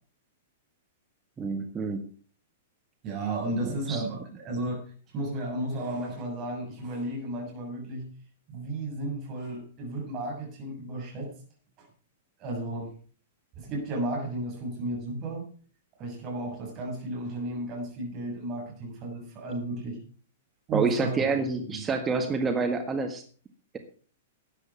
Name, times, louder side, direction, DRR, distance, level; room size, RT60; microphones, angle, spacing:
voice 1, 1.4-2.0 3.9-4.0 20.7-23.2, right 4 dB, 20° right, 6 dB, 1.6 m, -27 dB
voice 2, 3.0-4.8 5.1-8.1 8.5-11.3 12.4-12.9 13.6-15.5 16.0-20.0 20.7-21.3 21.6-21.9, right 1 dB, 35° right, -1 dB, 6.9 m, -33 dB
13.0 x 9.8 x 5.9 m, 0.43 s
figure-of-eight pair, 105°, 0 cm